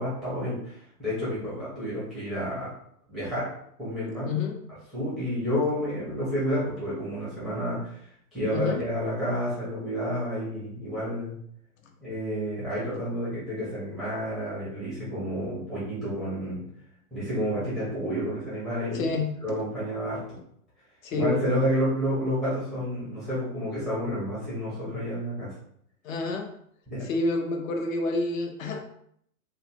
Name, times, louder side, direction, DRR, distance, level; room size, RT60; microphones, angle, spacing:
voice 1, 0.0-2.8 3.1-4.4 4.9-8.0 8.3-11.4 12.0-16.6 17.1-19.1 19.4-20.4 21.1-25.5 26.9-27.1, equal, ahead, -10 dB, 0.4 m, -30 dB
voice 2, 4.3-4.6 8.5-8.8 18.9-19.3 21.0-21.4 26.0-26.5 27.0-28.8, left 3 dB, 60° left, 3 dB, 0.7 m, -28 dB
2.5 x 2.4 x 2.7 m, 0.68 s
hypercardioid pair, 130°, 46 cm